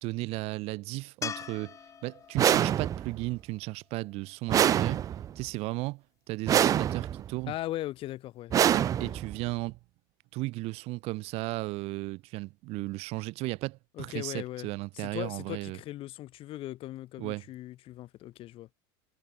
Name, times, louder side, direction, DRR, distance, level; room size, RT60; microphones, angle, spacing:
voice 1, 0.0-5.1 5.4-7.5 8.7-9.8 10.3-15.8 17.2-17.4, right 22 dB, 50° right, 0.7 m, -35 dB
sound 1, 1.2-4.5 7.7-7.8, left 7 dB, 25° left, 1.6 m, -43 dB
sound 2, 2.4-3.2 4.5-5.4 6.5-7.3 8.5-9.4, right 10 dB, 25° right, 0.4 m, -25 dB
voice 2, 7.5-9.1 14.0-14.7 14.9-18.7, left 15 dB, 45° left, 2.3 m, -39 dB
supercardioid pair, 135°, 13 cm